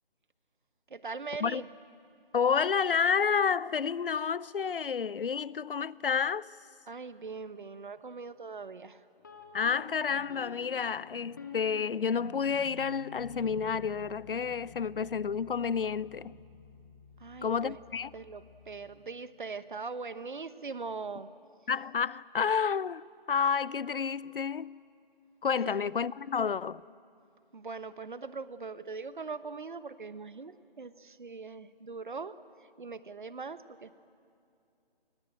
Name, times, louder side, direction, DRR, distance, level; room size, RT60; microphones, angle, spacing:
voice 1, 0.9-1.7 6.9-9.0 17.2-17.8 18.1-21.3 25.7-25.8 27.5-32.3 32.8-33.9, right 4 dB, 55° right, 1.1 m, -41 dB
voice 2, 2.3-6.5 9.5-16.3 17.4-18.1 21.7-24.8 25.4-26.8, left 6 dB, 65° left, 0.6 m, -30 dB
sound 1, 9.2-19.0, left 4 dB, 20° left, 1.5 m, -50 dB
28.5 x 21.0 x 8.9 m
hypercardioid pair, 175°, 29 cm